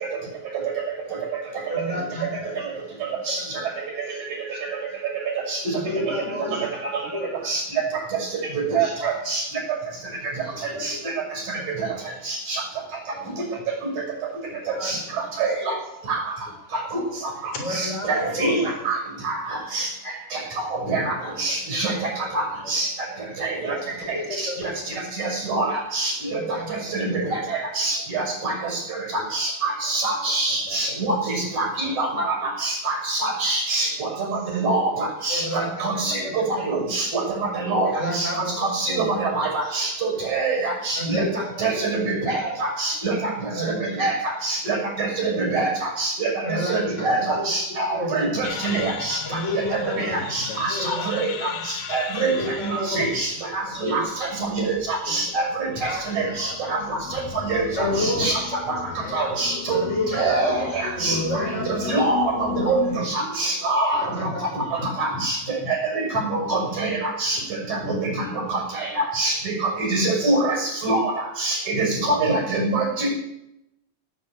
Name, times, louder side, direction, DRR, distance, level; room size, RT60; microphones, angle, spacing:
voice 1, 1.7-2.6 3.5-3.8 5.7-6.6 7.1-7.5 8.8-8.9 10.7-10.8 14.7-15.0 17.6-18.6 22.2-22.3 23.6-23.8 24.1-24.6 25.2-25.4 26.2-26.8 35.3-36.3 37.9-38.6 38.9-39.2 39.6-39.8 41.0-41.9 43.5-44.3 46.4-47.5 47.9-48.3 49.2-50.2 50.7-51.1 51.4-51.6 52.3-53.1 53.8-54.1 55.1-55.2 55.9-56.6 57.8-58.5 59.0-59.2 59.7-60.7 61.0-61.9 63.0-63.3 63.9-64.4, left 1 dB, 20° left, 0 dB, 4.4 m, -30 dB
voice 2, 2.2-2.6 3.1-3.2 10.5-11.0 13.1-13.4 14.5-14.7 15.1-15.3 17.4-17.7 18.3-18.9 20.6-21.6 22.4-22.7 23.8-23.9 24.7-25.1 27.1-27.5 28.6-28.7 29.1-29.3 29.8-31.1 31.6-32.5 34.6-35.1 36.0-36.3 39.3-39.5 44.0-44.2 45.7-45.8 47.1-47.4 48.7-48.9 49.6-50.7 53.7-53.9 55.1-55.4 56.1-56.3 57.8-58.3 64.0-65.3 65.6-65.7 66.1-66.8 67.5-68.5 68.9-69.0 69.9-70.1 71.7-72.4, left 4 dB, 60° left, 4 dB, 5.0 m, -38 dB
voice 3, 5.5-5.8 7.5-7.6 8.5-9.4 10.8-11.1 12.2-12.6 14.8-15.0 15.4-15.8 16.1-16.2 16.7-17.0 17.4-19.0 19.2-19.4 19.7-19.9 20.3-20.4 20.9-22.9 23.4-23.6 24.1-24.5 25.2-26.1 26.9-28.5 29.3-32.3 32.6-35.4 35.8-37.2 37.5-38.3 38.6-41.2 41.6-43.3 43.8-44.2 44.4-49.2 49.7-51.5 51.9-52.3 52.6-54.7 55.1-56.8 57.1-57.6 58.0-58.3 58.7-58.8 59.1-59.8 60.1-64.0 65.0-65.4 65.7-67.4 67.7-68.1 68.5-71.1 71.4-73.1, right 3 dB, 60° right, 1 dB, 7.3 m, -25 dB
sound 1, 48.4-63.0, left 10 dB, 85° left, 2.7 m, -35 dB
18.0 x 9.2 x 8.5 m, 0.83 s
omnidirectional pair, 3.8 m